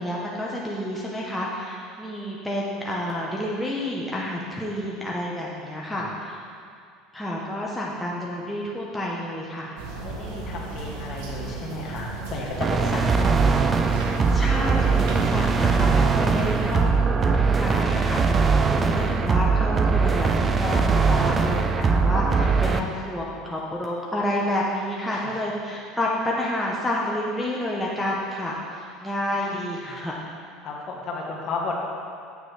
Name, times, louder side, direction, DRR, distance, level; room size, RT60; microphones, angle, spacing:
voice 1, 0.0-6.4 7.1-9.7 14.3-30.1, left 1 dB, 5° left, -5 dB, 0.8 m, -29 dB
sound 1, 9.8-16.8, right 3 dB, 75° right, 1.1 m, -34 dB
voice 2, 10.0-13.8 18.6-18.8 25.1-25.2 30.6-31.7, left 3 dB, 40° left, -2 dB, 1.4 m, -33 dB
sound 2, 12.6-22.8, right 4 dB, 25° right, 0.4 m, -21 dB
7.9 x 6.7 x 3.3 m, 2.3 s
supercardioid pair, 125°, 0 cm